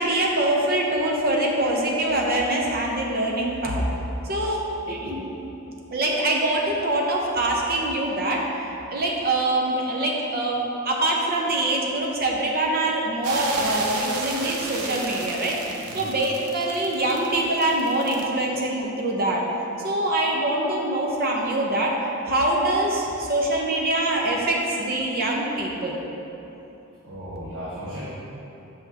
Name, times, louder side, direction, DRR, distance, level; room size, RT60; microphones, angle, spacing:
voice 1, 0.0-3.8 4.3-5.2 5.9-8.5 8.9-15.6 15.9-19.5 19.8-22.0 22.3-26.0, right 1 dB, 45° right, -1 dB, 0.8 m, -24 dB
sound 1, 13.2-18.3, right 3 dB, 90° right, 0.7 m, -33 dB
voice 2, 27.0-28.0, equal, 65° right, -11 dB, 1.3 m, -35 dB
6.6 x 6.1 x 2.9 m, 3.0 s
head